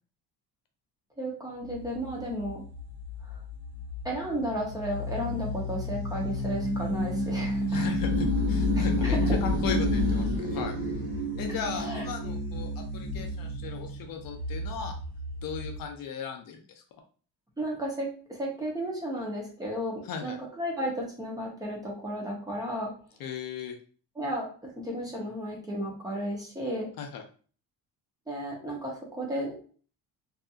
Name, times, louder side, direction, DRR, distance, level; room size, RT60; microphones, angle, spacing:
voice 1, 1.2-2.6 3.2-3.4 4.0-7.9 8.7-9.4 11.7-12.0 17.6-22.9 24.2-26.9 28.3-29.5, right 1 dB, 10° right, -3 dB, 0.7 m, -33 dB
sound 1, 1.7-15.8, left 1 dB, 55° right, 1.3 m, -30 dB
voice 2, 7.7-10.7 11.4-15.0 15.4-16.6 20.0-20.4 23.2-23.8 27.0-27.2, left 7 dB, 55° left, 4 dB, 0.5 m, -37 dB
2.7 x 2.4 x 2.4 m, 0.41 s
cardioid pair, 155°, 42 cm